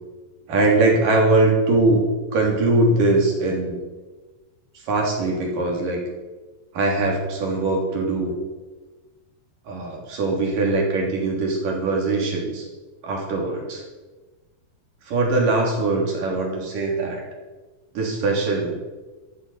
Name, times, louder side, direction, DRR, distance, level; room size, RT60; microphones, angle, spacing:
voice 1, 0.5-2.1 2.3-3.8 4.8-6.0 6.7-8.4 9.7-12.7 13.0-13.8 15.1-17.2 17.9-18.8, right 2 dB, 60° right, 0 dB, 4.8 m, -21 dB
15.0 x 14.0 x 5.6 m, 1.2 s
omnidirectional pair, 4.4 m